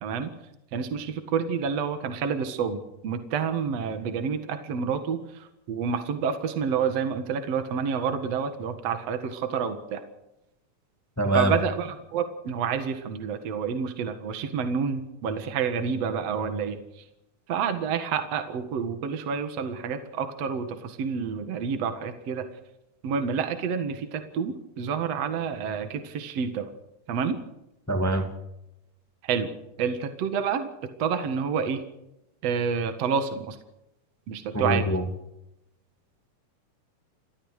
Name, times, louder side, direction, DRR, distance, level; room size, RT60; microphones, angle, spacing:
voice 1, 0.7-10.0 11.3-16.8 17.5-22.5 23.0-26.7 27.1-27.4 29.2-29.5 29.8-30.7 31.0-31.8 32.4-33.6 34.3-34.8, right 6 dB, 55° right, 8 dB, 2.7 m, -28 dB
voice 2, 11.2-11.5 27.9-28.3 34.5-35.0, right 1 dB, 5° left, 5 dB, 1.5 m, -24 dB
30.0 x 13.0 x 6.6 m, 0.88 s
omnidirectional pair, 3.6 m